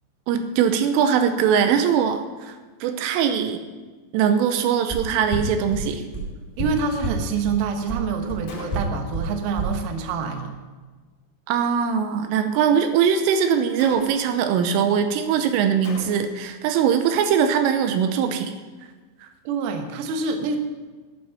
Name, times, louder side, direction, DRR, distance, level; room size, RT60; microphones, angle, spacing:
voice 1, 0.3-2.6 2.8-3.6 4.1-6.0 11.5-18.5, right 7 dB, 90° right, 8 dB, 3.3 m, -21 dB
sound 1, 4.9-5.0 5.3-5.4 5.7-5.8 6.1-6.2 6.6-6.7 7.0-7.1 7.4-7.5 7.9-8.0 8.3-8.4 8.7-8.8 9.1-9.2 9.6-9.7, equal, 10° right, 4.3 m, -27 dB
voice 2, 6.6-10.5 19.4-20.6, right 5 dB, 70° right, 5 dB, 2.4 m, -26 dB
Gunshot gunfire, 8.5-9.2 13.8-14.5 15.8-16.5, left 5 dB, 70° left, 1.9 m, -40 dB
12.0 x 9.4 x 5.7 m, 1.3 s
omnidirectional pair, 5.8 m